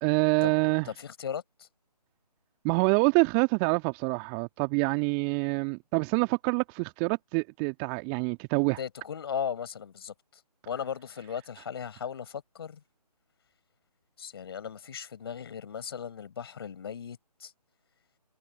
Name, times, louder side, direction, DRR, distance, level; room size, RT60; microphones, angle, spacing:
voice 1, 0.0-0.9 2.6-8.8, right 35 dB, 15° right, 1.7 m, -26 dB
voice 2, 0.8-1.7 8.8-10.1 10.7-12.8 14.2-17.5, left 7 dB, 35° left, 4.7 m, -37 dB
figure-of-eight pair, 150°, 21 cm